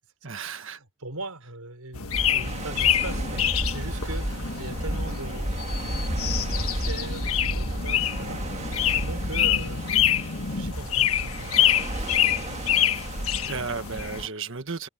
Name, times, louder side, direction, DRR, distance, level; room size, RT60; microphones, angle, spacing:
voice 1, 0.2-0.8 13.5-14.9, right 5 dB, 60° right, 1.6 m, -33 dB
voice 2, 1.0-8.5 8.9-9.8 10.4-12.1, right 2 dB, 90° right, 5.5 m, -40 dB
sound 1, 1.9-14.3, left 10 dB, 75° left, 1.4 m, -26 dB
sound 2, 2.1-14.3, right 1 dB, 30° right, 1.7 m, -32 dB
sound 3, 5.6-14.3, equal, 15° left, 5.6 m, -54 dB
head